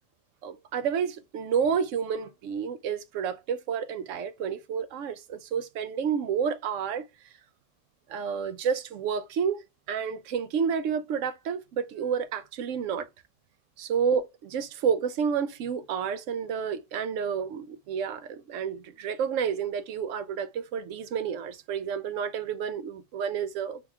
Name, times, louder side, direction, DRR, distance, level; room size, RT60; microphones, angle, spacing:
voice 1, 0.4-7.1 8.1-9.6 9.9-13.1 13.8-23.8, right 7 dB, 80° right, 0.9 m, -30 dB
3.5 x 3.0 x 3.5 m
omnidirectional pair, 1.3 m